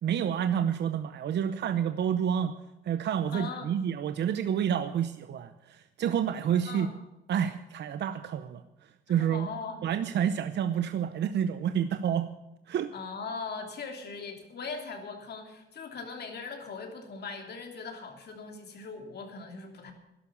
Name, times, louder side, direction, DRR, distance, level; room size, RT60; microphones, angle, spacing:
voice 1, 0.0-2.6 2.8-6.9 7.3-9.5 9.8-12.3 12.7-12.9, right 9 dB, 60° right, 11 dB, 0.7 m, -29 dB
voice 2, 3.3-3.7 6.5-6.9 9.1-9.8 12.9-19.9, left 4 dB, 55° left, 3 dB, 3.0 m, -40 dB
12.5 x 11.5 x 6.9 m, 0.95 s
cardioid pair, 90°, 20 cm